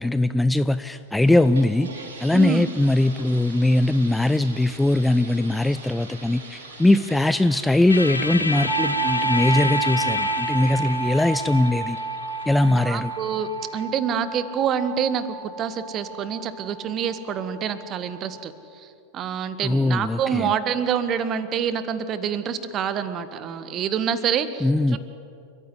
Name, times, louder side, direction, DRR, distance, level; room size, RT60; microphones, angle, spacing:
voice 1, 0.0-12.0 12.5-13.1 19.6-20.5 24.6-25.0, left 1 dB, 5° left, 13 dB, 0.5 m, -21 dB
sound 1, 0.9-13.4, right 3 dB, 65° right, 7.1 m, -43 dB
voice 2, 2.3-2.7 12.7-25.0, right 8 dB, 30° right, 12 dB, 1.8 m, -27 dB
sound 2, 7.9-13.8, left 3 dB, 80° left, 1.5 m, -30 dB
sound 3, 8.7-18.4, right 4 dB, 10° right, 2.7 m, -31 dB
29.5 x 15.5 x 9.9 m, 2.5 s
figure-of-eight pair, 90°, 0 cm